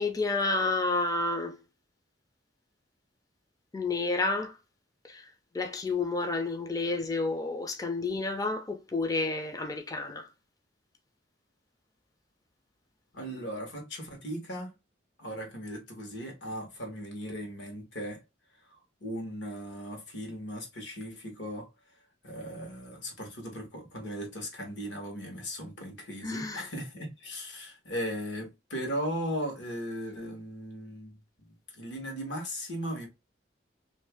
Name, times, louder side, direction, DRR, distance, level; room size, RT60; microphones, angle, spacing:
voice 1, 0.0-1.6 3.7-4.6 5.0-10.3 26.2-26.7, left 3 dB, 20° left, 0.4 m, -30 dB
voice 2, 13.1-14.7 15.2-18.2 18.7-21.7 22.2-33.1, equal, 70° left, 1.3 m, -37 dB
2.8 x 2.7 x 3.4 m
head